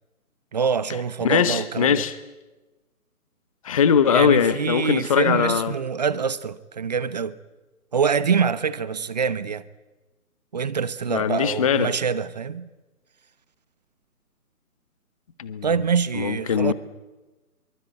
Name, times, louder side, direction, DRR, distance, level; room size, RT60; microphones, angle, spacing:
voice 1, 0.5-2.0 4.1-7.4 7.9-9.6 10.5-12.7 15.6-16.7, right 6 dB, 30° right, 1.0 m, -25 dB
voice 2, 1.2-2.1 3.6-5.7 11.1-11.9 15.4-15.7 16.1-16.7, left 7 dB, 25° left, 1.0 m, -21 dB
26.0 x 23.5 x 8.4 m
figure-of-eight pair, 145°, 45 cm